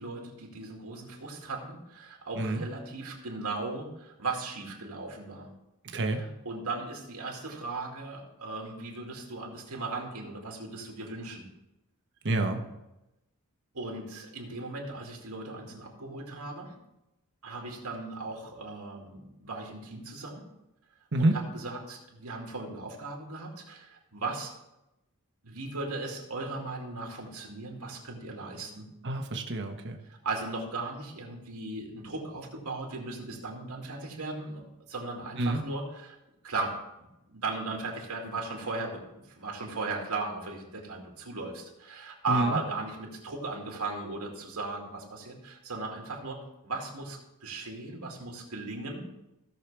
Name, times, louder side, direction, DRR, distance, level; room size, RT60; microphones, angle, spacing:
voice 1, 0.0-5.5 6.0-11.5 13.7-16.7 17.4-20.4 21.2-24.5 25.4-28.9 30.1-34.6 34.9-36.2 36.4-36.8 37.3-49.0, right 3 dB, 85° right, 0 dB, 2.4 m, -37 dB
voice 2, 12.2-12.6 21.1-21.3 29.0-30.0 35.4-35.6 42.3-42.6, right 1 dB, 55° right, 5 dB, 1.1 m, -27 dB
16.5 x 6.6 x 3.4 m, 0.93 s
head